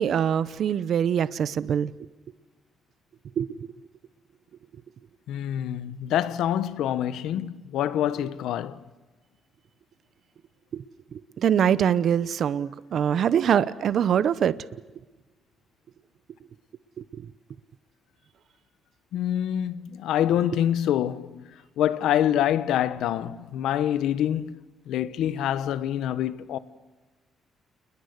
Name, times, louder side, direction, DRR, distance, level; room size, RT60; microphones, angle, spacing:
voice 1, 0.0-1.9 3.4-3.7 10.7-10.8 11.1-14.6 17.1-17.3, right 8 dB, 65° right, 0.8 m, -24 dB
voice 2, 5.3-8.8 19.1-21.5 21.8-24.6 24.9-26.6, left 11 dB, 85° left, 1.3 m, -26 dB
29.5 x 21.5 x 8.1 m
cardioid pair, 90°, 0 cm